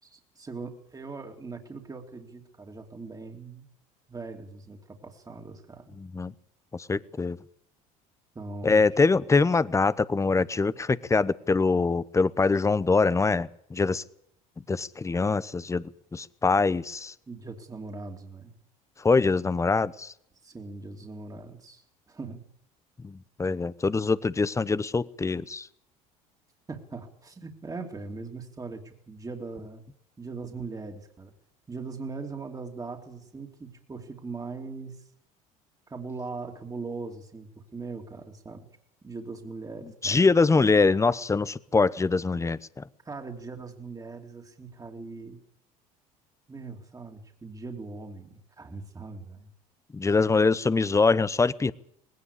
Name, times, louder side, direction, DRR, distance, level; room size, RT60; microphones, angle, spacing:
voice 1, 0.0-3.7 4.1-5.9 8.3-8.8 17.3-18.5 20.4-22.4 26.7-29.8 30.2-31.3 31.7-35.1 35.9-38.7 39.0-40.7 43.0-45.4 46.5-49.5, right 4 dB, 20° right, 3 dB, 2.7 m, -40 dB
voice 2, 6.0-6.3 6.7-7.4 8.6-14.0 14.7-17.1 19.0-20.1 23.0-25.7 40.0-42.9 49.9-51.7, left 4 dB, 15° left, 18 dB, 0.9 m, -24 dB
19.5 x 17.0 x 8.3 m, 0.71 s
hypercardioid pair, 75°, 18 cm